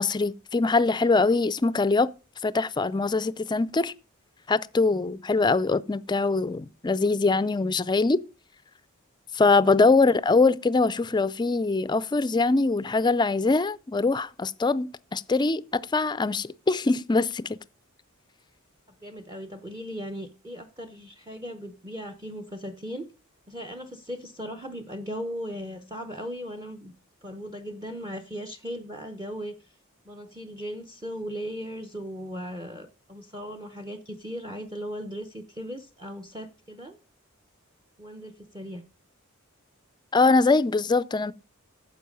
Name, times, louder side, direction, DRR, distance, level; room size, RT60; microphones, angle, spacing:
voice 1, 0.0-2.1 2.4-3.9 4.5-8.2 9.3-17.6 40.1-41.3, left 3 dB, 20° left, 0.4 m, -23 dB
voice 2, 19.0-23.1 23.5-26.9 27.2-29.7 30.1-37.0 38.0-38.8, equal, 20° right, 0.8 m, -37 dB
10.0 x 7.2 x 5.3 m
head